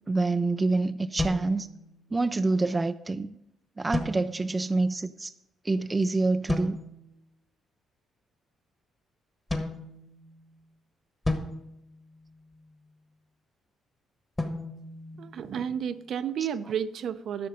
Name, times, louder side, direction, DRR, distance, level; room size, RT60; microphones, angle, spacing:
voice 1, 0.1-1.7 2.1-3.3 3.8-5.3 5.6-6.8, right 3 dB, 20° right, 0.3 m, -26 dB
sound 1, 1.2-2.3 3.9-4.7 6.5-7.1 9.5-10.6 11.2-12.7 14.4-15.9, left 2 dB, 15° left, 1.3 m, -34 dB
voice 2, 15.2-17.5, right 8 dB, 65° right, 0.6 m, -31 dB
11.0 x 6.5 x 5.1 m
cardioid pair, 110°, 0 cm